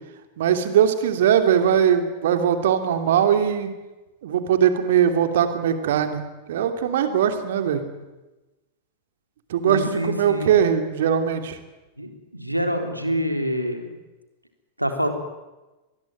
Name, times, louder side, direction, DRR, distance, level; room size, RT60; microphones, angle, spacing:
voice 1, 0.4-3.7 4.2-7.8 9.5-11.6, right 9 dB, 60° right, 7 dB, 2.9 m, -20 dB
voice 2, 9.6-10.5 12.0-13.9 14.8-15.1, equal, 90° right, 6 dB, 3.5 m, -26 dB
25.0 x 20.0 x 9.3 m, 1.1 s
figure-of-eight pair, 90°, 0 cm